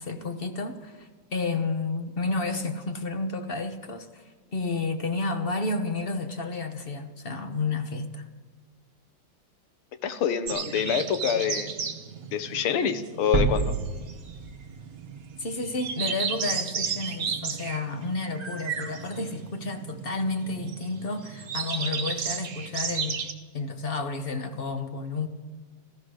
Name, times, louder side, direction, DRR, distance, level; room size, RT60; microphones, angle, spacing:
voice 1, 0.0-8.2 15.4-23.2 23.5-25.3, left 3 dB, 35° left, 7 dB, 0.9 m, -31 dB
voice 2, 10.0-11.8 12.3-13.7, left 7 dB, 90° left, 11 dB, 1.9 m, -26 dB
sound 1, 10.5-23.3, right 6 dB, 50° right, 1.3 m, -34 dB
sound 2, 13.3-15.4, right 4 dB, 35° right, 1.4 m, -28 dB
15.0 x 14.5 x 6.4 m, 1.3 s
omnidirectional pair, 2.3 m